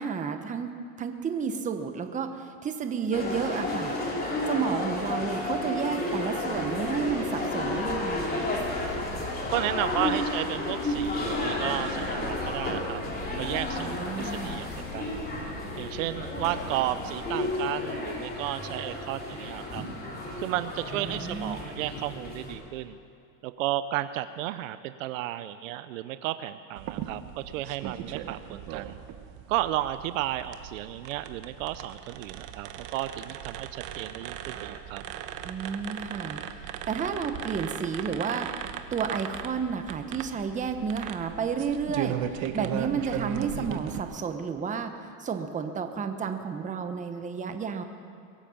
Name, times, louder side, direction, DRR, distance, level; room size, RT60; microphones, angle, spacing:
voice 1, 0.0-3.9 4.5-8.5 13.8-14.6 20.9-21.6 35.4-38.5 38.9-47.8, right 6 dB, 20° right, 7 dB, 1.0 m, -31 dB
sound 1, 3.1-22.6, left 2 dB, 25° left, 3.4 m, -32 dB
Purr, 6.4-17.6, left 3 dB, 50° left, 2.7 m, -43 dB
voice 2, 9.5-13.0 13.3-15.2 15.8-19.8 20.4-23.0 23.4-29.0 29.5-35.0, right 14 dB, 80° right, 12 dB, 0.7 m, -33 dB
sound 2, 26.8-44.0, right 10 dB, 50° right, 1.1 m, -37 dB
22.5 x 9.0 x 7.1 m, 2.3 s
supercardioid pair, 130°, 38 cm